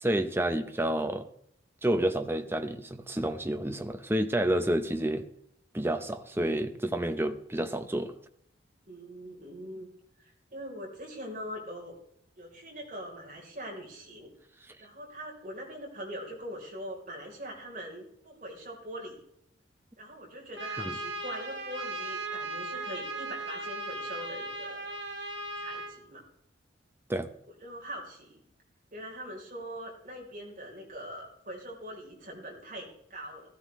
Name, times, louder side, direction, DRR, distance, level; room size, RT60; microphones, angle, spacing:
voice 1, 0.0-1.3 1.8-5.2 5.7-8.1 20.8-20.9 27.1-27.3, right 1 dB, 10° right, 8 dB, 0.7 m, -29 dB
voice 2, 8.9-9.9 10.2-12.0 12.4-14.3 14.8-19.2 20.0-24.9 25.6-26.2 27.6-28.4 28.9-33.5, equal, 40° right, -1 dB, 3.6 m, -42 dB
Trumpet, 20.6-25.9, right 2 dB, 70° right, 1.7 m, -37 dB
16.0 x 13.5 x 3.2 m, 0.72 s
head